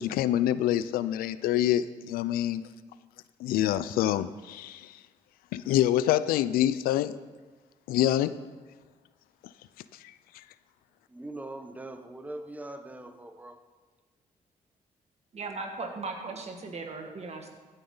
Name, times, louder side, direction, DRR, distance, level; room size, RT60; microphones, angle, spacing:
voice 1, 0.0-2.6 3.4-5.0 5.5-7.2 7.9-8.4 10.3-10.4, left 12 dB, 85° left, 0.4 m, -26 dB
voice 2, 11.1-13.6, right 1 dB, 10° right, 1.1 m, -41 dB
voice 3, 15.3-17.5, right 3 dB, 45° right, 2.0 m, -37 dB
14.5 x 9.1 x 3.9 m
supercardioid pair, 65°, 15 cm